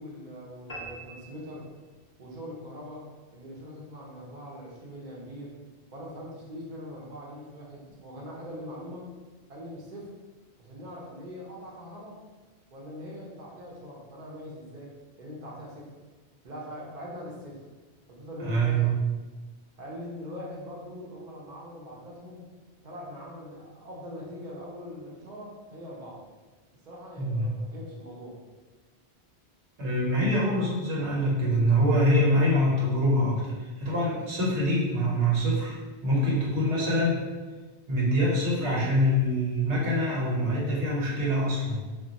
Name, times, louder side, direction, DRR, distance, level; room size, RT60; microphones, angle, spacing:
voice 1, 0.0-1.7 2.2-3.1 3.3-5.5 5.9-9.1 9.5-10.2 10.6-12.2 12.7-15.9 16.4-17.6 18.1-18.9 19.8-22.4 22.8-26.2 26.8-28.4, equal, 50° right, -4 dB, 0.7 m, -42 dB
sound 1, 0.7-2.2, right 2 dB, 25° left, 0.5 m, -43 dB
voice 2, 18.4-19.0 27.2-27.5 29.8-37.2 37.9-41.8, equal, 85° right, -5 dB, 1.2 m, -25 dB
2.3 x 2.2 x 3.9 m, 1.3 s
omnidirectional pair, 1.1 m